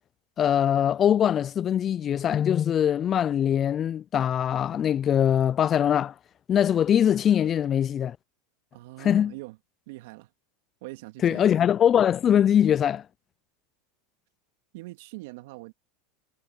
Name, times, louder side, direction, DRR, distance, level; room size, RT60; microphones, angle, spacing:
voice 1, 0.4-6.1 6.5-8.2 9.0-9.3 11.2-13.0, left 9 dB, 35° left, 0.5 m, -22 dB
voice 2, 8.7-9.6 9.9-10.3 10.8-11.4 14.7-15.7, right 21 dB, 65° right, 2.3 m, -42 dB
hypercardioid pair, 95°, 0 cm